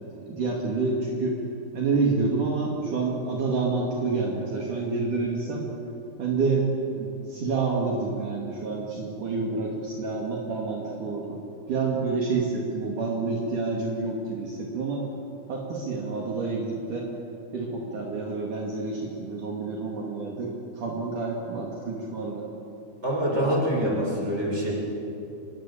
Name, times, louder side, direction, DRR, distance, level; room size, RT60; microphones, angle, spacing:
voice 1, 0.3-1.4 1.7-5.7 6.2-11.4 11.7-15.0 15.5-17.1 17.5-22.5, right 4 dB, 60° right, -2 dB, 3.8 m, -28 dB
voice 2, 23.0-24.7, equal, 15° right, -2 dB, 6.2 m, -25 dB
26.5 x 21.5 x 8.6 m, 2.8 s
omnidirectional pair, 4.4 m